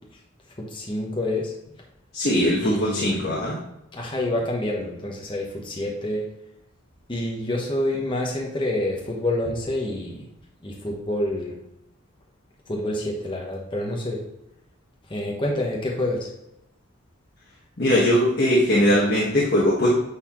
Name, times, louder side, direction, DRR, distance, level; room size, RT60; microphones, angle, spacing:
voice 1, 0.6-1.5 2.6-3.2 3.9-6.3 7.1-10.3 10.6-11.6 12.7-14.3 15.1-16.3, left 1 dB, 25° left, -2 dB, 1.1 m, -27 dB
voice 2, 2.1-3.6 17.8-19.9, left 1 dB, 50° left, -7 dB, 1.6 m, -20 dB
9.6 x 4.2 x 3.1 m, 0.83 s
head